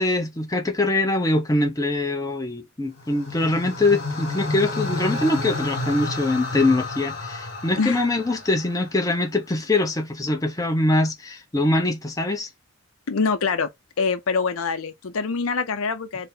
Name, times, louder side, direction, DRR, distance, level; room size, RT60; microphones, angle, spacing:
voice 1, 0.0-12.5, left 2 dB, 15° left, 0.7 m, -23 dB
sound 1, 3.0-9.3, left 2 dB, 50° left, 1.6 m, -31 dB
voice 2, 13.1-13.7 14.0-16.3, left 5 dB, 70° left, 0.6 m, -24 dB
4.2 x 2.1 x 3.7 m
head